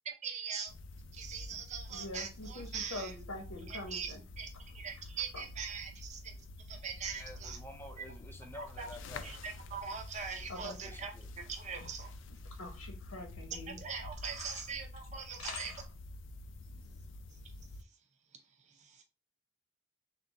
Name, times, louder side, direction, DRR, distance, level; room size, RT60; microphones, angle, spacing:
voice 1, 0.0-0.7 1.1-3.1 3.7-6.3 6.7-7.6 8.0-8.1 8.5-8.9 9.2-11.1 11.4-12.1 13.8-15.7 18.8-19.0, right 6 dB, 35° right, 0.5 m, -42 dB
sound 1, 0.7-17.8, left 2 dB, 60° left, 0.4 m, -48 dB
voice 2, 1.9-4.2 5.3-5.4 10.5-10.8 12.4-13.8 14.2-14.6 15.4-15.9, left 2 dB, 90° left, 0.9 m, -44 dB
voice 3, 7.1-9.4 10.8-11.3, left 1 dB, 10° left, 0.6 m, -50 dB
3.5 x 2.5 x 3.9 m
head